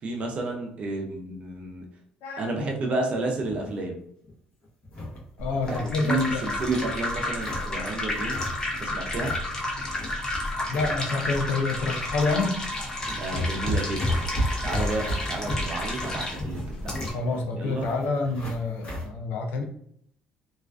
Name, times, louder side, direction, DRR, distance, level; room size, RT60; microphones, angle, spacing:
voice 1, 0.0-1.8 2.4-4.0 5.7-8.5 8.8-9.4 13.1-14.2 14.6-17.0 17.5-17.9, right 2 dB, 45° right, 2 dB, 0.5 m, -31 dB
voice 2, 2.2-2.6 5.4-6.4 10.7-12.6 17.1-19.6, left 3 dB, 80° left, 3 dB, 0.4 m, -28 dB
sound 1, 3.4-3.8 4.2-4.3 4.6-5.9 6.3-7.8 8.2-8.7 9.0-9.4 9.8-11.4 11.8-11.9 12.6-12.7 13.0-19.1, left 1 dB, 50° left, 0.9 m, -33 dB
sound 2, 5.4-17.1, left 1 dB, 25° left, 0.5 m, -31 dB
2.4 x 2.3 x 2.3 m, 0.67 s
cardioid pair, 130°, 3 cm